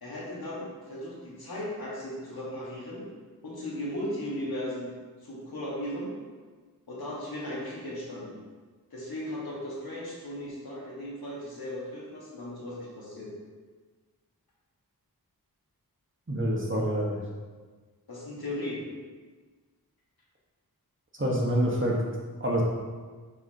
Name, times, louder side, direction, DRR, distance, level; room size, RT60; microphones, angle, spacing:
voice 1, 0.0-3.1 3.4-4.9 5.2-6.1 6.9-8.4 8.9-13.3 18.1-18.8, left 1 dB, 75° left, -5 dB, 1.8 m, -36 dB
voice 2, 16.3-17.2 21.2-22.0 22.4-22.6, equal, 35° right, -3 dB, 1.5 m, -26 dB
6.7 x 5.4 x 2.9 m, 1.4 s
cardioid pair, 40°, 37 cm